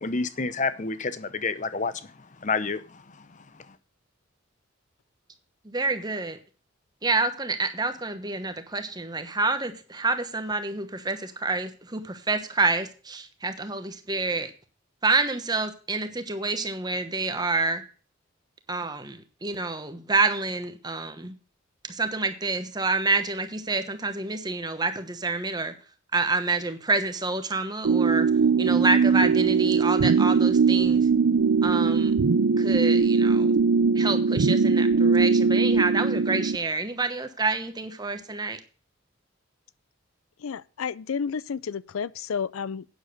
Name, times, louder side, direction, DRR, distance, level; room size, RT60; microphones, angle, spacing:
voice 1, 0.0-1.9 2.4-3.0, left 4 dB, 35° left, 0.8 m, -28 dB
voice 2, 5.6-6.4 7.0-14.5 15.0-17.8 18.7-21.3 21.9-25.7 26.1-28.3 28.6-31.1 31.6-32.1 32.6-33.6 33.9-38.6, right 3 dB, 20° right, 1.1 m, -28 dB
sound 1, 27.8-36.6, right 5 dB, 85° right, 0.5 m, -21 dB
voice 3, 40.4-42.9, left 6 dB, 85° left, 0.5 m, -31 dB
9.2 x 7.2 x 6.5 m
head